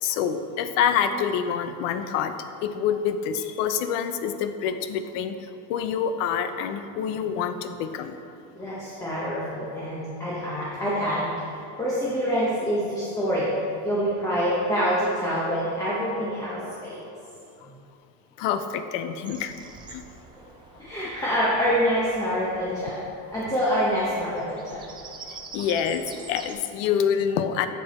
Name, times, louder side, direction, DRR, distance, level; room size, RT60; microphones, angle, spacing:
voice 1, 0.0-2.3 2.6-8.2 18.4-19.5 19.9-20.1 25.3-27.7, left 8 dB, 85° left, 9 dB, 0.7 m, -27 dB
voice 2, 8.5-17.0 17.7-17.8 20.8-23.0 23.3-24.8, equal, 10° left, -8 dB, 0.8 m, -26 dB
Bird vocalization bird call bird song, 19.2-26.5, right 4 dB, 15° right, 0.3 m, -46 dB
7.7 x 6.6 x 4.2 m, 2.6 s
cardioid pair, 180°, 37 cm